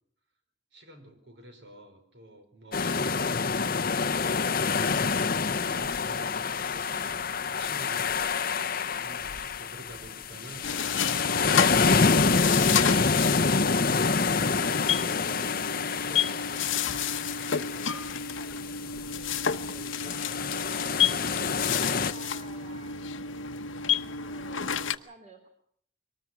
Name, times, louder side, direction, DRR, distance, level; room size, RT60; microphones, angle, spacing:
voice 1, 0.7-3.9 4.6-8.3 9.0-12.8, right 1 dB, 60° right, 6 dB, 4.9 m, -49 dB
sound 1, 2.7-22.1, left 4 dB, 45° left, 0.8 m, -27 dB
sound 2, 10.6-25.0, left 7 dB, 75° left, 1.1 m, -31 dB
voice 2, 14.4-16.7 17.1-21.4 21.8-23.5 23.8-25.5, right 1 dB, 35° right, 4 dB, 3.5 m, -53 dB
23.5 x 19.5 x 6.1 m, 0.63 s
head